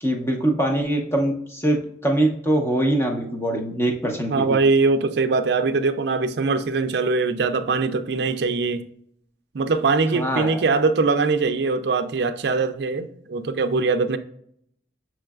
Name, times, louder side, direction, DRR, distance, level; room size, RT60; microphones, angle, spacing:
voice 1, 0.0-4.4 10.1-10.7, right 1 dB, 15° left, 0.8 m, -23 dB
voice 2, 4.3-8.8 9.5-14.2, right 4 dB, 65° right, 0.4 m, -22 dB
6.8 x 3.1 x 2.3 m
head